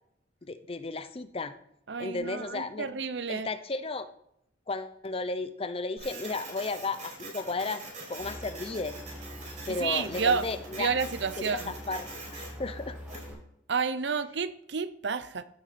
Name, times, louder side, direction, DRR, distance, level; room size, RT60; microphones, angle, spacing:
voice 1, 0.4-1.5 2.0-2.9 3.3-4.1 4.7-7.8 8.1-8.9 9.7-10.9 11.4-13.2, left 3 dB, 30° left, 0.6 m, -34 dB
voice 2, 1.9-3.5 9.8-10.5 10.7-11.7 13.7-15.4, right 5 dB, 65° right, 0.6 m, -30 dB
Printer, 6.0-13.3, right 2 dB, 40° right, 5.0 m, -44 dB
sound 1, 8.2-13.4, equal, 5° right, 1.9 m, -44 dB
15.5 x 9.3 x 4.3 m
head